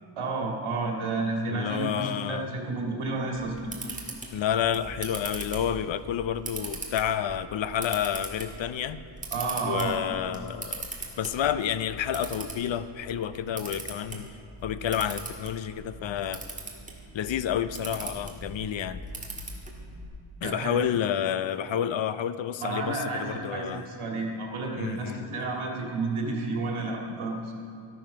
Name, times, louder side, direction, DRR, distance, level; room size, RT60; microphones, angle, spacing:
voice 1, 0.2-4.0 9.3-10.0 20.4-20.8 22.6-27.5, right 3 dB, 85° right, -1 dB, 2.3 m, -31 dB
voice 2, 1.5-2.5 4.3-9.0 9.6-10.9 11.2-14.3 14.6-16.4 17.1-19.0 20.4-23.8 24.8-25.3, left 9 dB, 65° left, 13 dB, 0.6 m, -29 dB
Camera, 3.3-20.1, right 2 dB, 15° right, 1.6 m, -40 dB
13.5 x 9.2 x 5.8 m, 2.5 s
wide cardioid pair, 165°, 49 cm